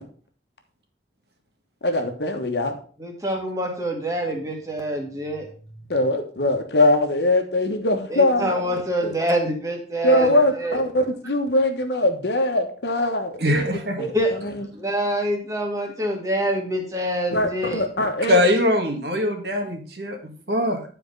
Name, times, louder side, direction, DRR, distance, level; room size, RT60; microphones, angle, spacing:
voice 1, 1.8-2.8 5.9-8.7 9.0-9.1 10.0-13.7 14.0-14.7 17.3-18.4, left 1 dB, 70° left, 5 dB, 1.2 m, -22 dB
voice 2, 3.0-5.5 8.1-10.8 14.0-14.4 14.7-17.8, right 1 dB, 20° right, 1 dB, 1.8 m, -26 dB
voice 3, 13.4-13.9 18.3-20.2 20.5-20.8, left 1 dB, 60° right, 3 dB, 1.7 m, -21 dB
9.6 x 4.6 x 5.3 m, 0.43 s
head